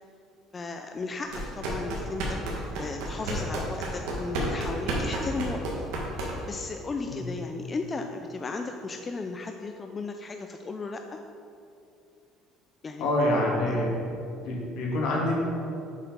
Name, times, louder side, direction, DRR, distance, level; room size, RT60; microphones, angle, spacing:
voice 1, 0.5-5.6 6.2-11.2 12.8-13.1 13.6-13.8, left 3 dB, 25° left, 5 dB, 0.4 m, -35 dB
sound 1, 1.3-6.6, right 1 dB, 90° right, 1.5 m, -31 dB
voice 2, 13.0-13.9 14.4-15.3, left 1 dB, 70° left, -2 dB, 1.8 m, -26 dB
7.2 x 4.6 x 5.3 m, 2.6 s
cardioid pair, 115°, 0 cm